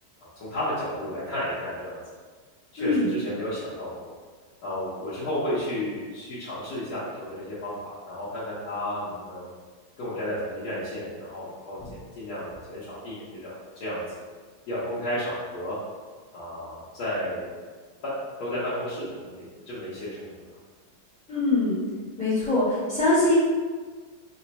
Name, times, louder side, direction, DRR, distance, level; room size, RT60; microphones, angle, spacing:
voice 1, 0.2-2.0 2.7-4.1 4.6-9.5 10.0-14.0 14.7-15.8 16.3-17.5 18.0-18.1 18.4-20.4, left 1 dB, 60° left, -10 dB, 1.2 m, -33 dB
voice 2, 2.8-3.1 21.3-21.8 22.2-23.3, left 2 dB, 5° left, -10 dB, 0.6 m, -23 dB
4.0 x 2.1 x 4.1 m, 1.5 s
omnidirectional pair, 2.3 m